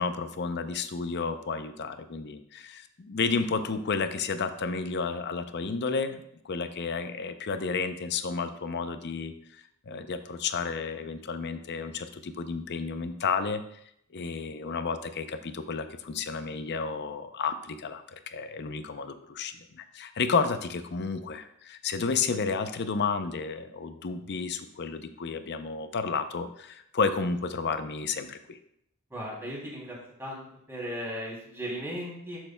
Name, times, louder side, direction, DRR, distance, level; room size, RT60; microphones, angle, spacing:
voice 1, 0.0-13.6 14.1-28.6, left 5 dB, 50° left, 10 dB, 0.5 m, -31 dB
voice 2, 29.1-32.4, equal, 10° right, -5 dB, 2.8 m, -37 dB
12.0 x 6.5 x 2.2 m, 0.74 s
head